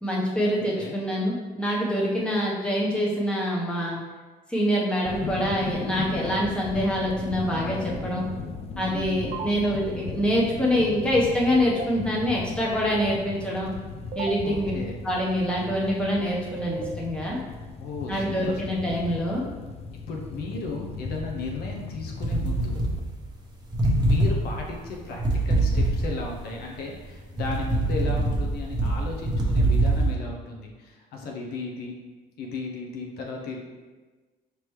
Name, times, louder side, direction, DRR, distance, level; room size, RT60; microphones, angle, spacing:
voice 1, 0.0-4.0 4.5-8.3 8.8-13.7 14.1-14.7 15.0-17.4 18.1-19.4, equal, 5° left, -4 dB, 1.0 m, -25 dB
sound 1, 5.0-23.0, left 4 dB, 35° left, 0.4 m, -37 dB
voice 2, 8.9-9.4 14.4-15.0 17.8-18.6 18.9-19.2 20.1-22.8 24.0-32.0 32.4-33.6, left 3 dB, 70° left, 0 dB, 0.7 m, -35 dB
sound 2, 9.3-9.5 11.7-11.9 14.1-14.3 16.5-16.9, right 6 dB, 50° right, 0.4 m, -33 dB
sound 3, 22.2-23.4 23.7-26.4 26.9-30.1, right 2 dB, 25° right, 0.9 m, -23 dB
5.0 x 3.0 x 3.1 m, 1.3 s
cardioid pair, 110°, 17 cm